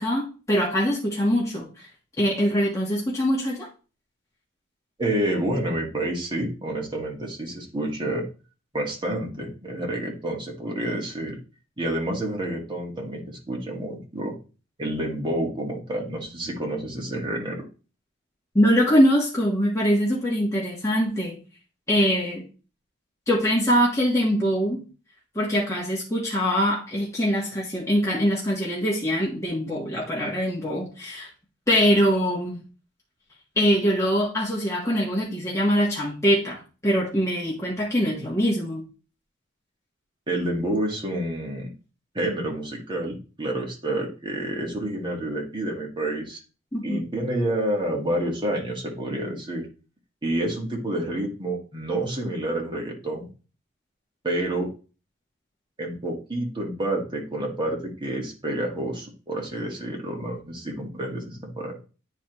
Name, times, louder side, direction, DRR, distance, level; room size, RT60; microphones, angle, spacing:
voice 1, 0.0-1.9 2.2-3.7 18.5-21.4 21.9-22.4 23.3-24.8 25.3-31.3 31.7-32.6 33.6-38.8 46.7-47.0, equal, 15° left, -5 dB, 1.3 m, -23 dB
voice 2, 5.0-8.2 8.7-11.4 11.8-14.4 14.8-17.6 40.3-41.7 42.1-46.4 46.8-49.6 50.2-53.3 54.2-54.7 55.8-61.8, right 1 dB, 25° right, 0 dB, 1.5 m, -29 dB
9.6 x 4.1 x 3.0 m, 0.35 s
head